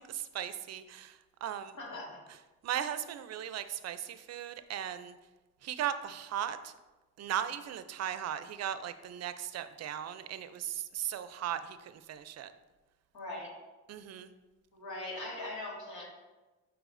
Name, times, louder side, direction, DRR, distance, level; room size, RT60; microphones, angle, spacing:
voice 1, 0.0-1.8 2.6-5.2 5.6-6.8 7.2-12.5 13.9-14.3, right 10 dB, 60° right, 12 dB, 0.5 m, -37 dB
voice 2, 1.8-2.2 13.1-13.5 14.7-16.0, left 2 dB, 80° left, -3 dB, 2.0 m, -40 dB
8.1 x 4.7 x 2.6 m, 1.2 s
cardioid pair, 90°, 30 cm